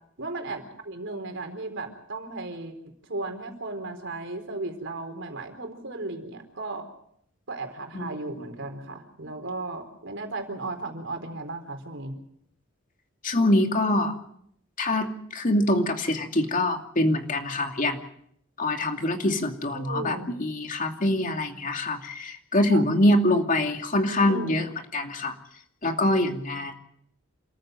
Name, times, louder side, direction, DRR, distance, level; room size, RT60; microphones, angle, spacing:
voice 1, 0.2-2.7 3.1-6.9 7.5-12.1 19.7-20.3 22.7-22.8 24.3-24.7, right 2 dB, 65° right, 6 dB, 4.1 m, -35 dB
voice 2, 13.2-14.2 14.8-18.0 18.6-25.3 25.8-26.7, left 1 dB, 40° left, 4 dB, 2.6 m, -24 dB
27.5 x 14.5 x 7.9 m, 0.71 s
head